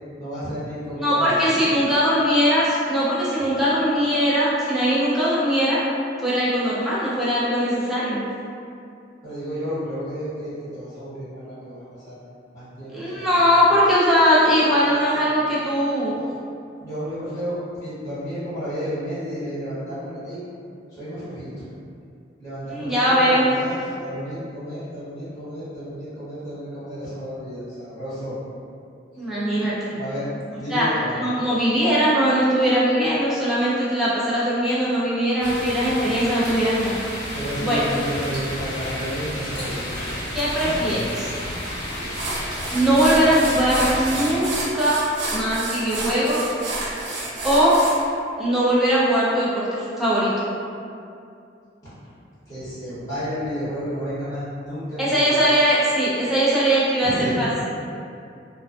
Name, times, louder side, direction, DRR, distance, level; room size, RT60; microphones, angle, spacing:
voice 1, 0.2-1.7 3.4-3.6 9.2-12.2 12.5-13.7 15.0-15.3 16.0-16.4 16.8-20.4 21.0-21.5 22.4-28.4 30.0-31.1 35.8-36.2 37.3-40.2 40.8-41.2 42.0-42.1 52.5-55.4 57.0-57.5, equal, 20° left, -14 dB, 0.9 m, -32 dB
voice 2, 1.0-5.8 6.2-8.2 12.9-16.2 22.7-23.5 29.2-29.9 30.7-30.9 31.1-37.0 37.6-37.8 40.3-41.3 42.7-45.0 45.3-46.5 47.4-47.8 48.4-50.3 55.0-57.5, equal, ahead, -10 dB, 0.5 m, -20 dB
sound 1, 35.4-44.4, left 1 dB, 65° left, 0.8 m, -31 dB
sound 2, 41.6-41.7 42.1-48.0, right 2 dB, 65° right, 0.4 m, -30 dB
2.5 x 2.2 x 2.3 m, 2.5 s
head